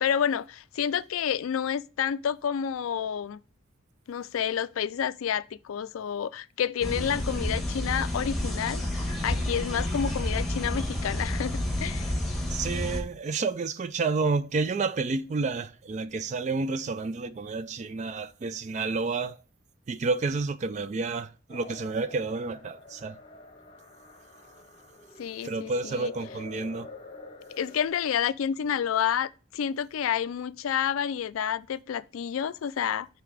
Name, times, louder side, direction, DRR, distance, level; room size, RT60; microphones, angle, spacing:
voice 1, 0.0-3.4 4.1-8.8 9.2-12.1 25.2-26.1 27.6-33.1, left 8 dB, 85° left, 0.4 m, -29 dB
sound 1, 6.8-13.0, left 1 dB, ahead, 1.2 m, -30 dB
voice 2, 12.5-19.4 19.9-23.2 25.4-26.9, right 4 dB, 35° right, 0.3 m, -30 dB
sound 2, 21.5-27.9, left 2 dB, 25° left, 0.8 m, -47 dB
5.8 x 3.5 x 4.8 m
head